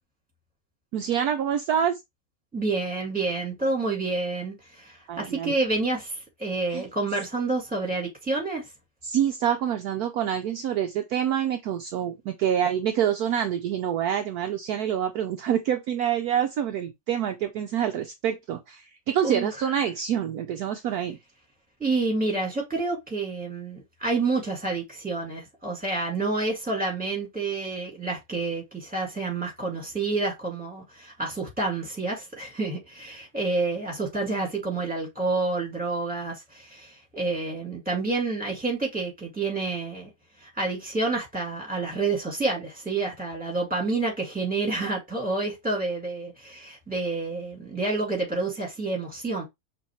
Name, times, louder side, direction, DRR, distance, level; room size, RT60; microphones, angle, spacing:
voice 1, 0.9-2.0 5.1-5.6 6.7-6.8 9.0-21.2, right 9 dB, 70° right, 1.0 m, -26 dB
voice 2, 2.5-8.6 19.2-19.5 21.8-40.1 40.4-49.4, right 3 dB, 5° right, 1.8 m, -29 dB
5.9 x 3.0 x 3.0 m
omnidirectional pair, 1.9 m